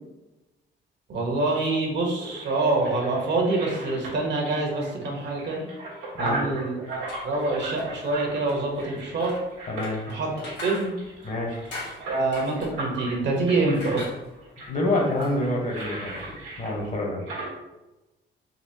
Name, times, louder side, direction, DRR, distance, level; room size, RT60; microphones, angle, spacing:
voice 1, 1.1-5.7 6.2-9.3 10.1-10.9 12.0-14.1, right 2 dB, 60° right, 0 dB, 1.1 m, -26 dB
sound 1, 1.9-17.5, right 2 dB, 85° right, 1.5 m, -38 dB
voice 2, 6.2-6.5 9.7-10.0 11.2-11.6 14.7-16.2 16.6-17.3, left 1 dB, 40° left, -1 dB, 1.1 m, -27 dB
sound 2, 6.9-17.0, left 2 dB, 65° left, 1.3 m, -44 dB
4.1 x 2.8 x 2.8 m, 1.0 s
cardioid pair, 90°, 20 cm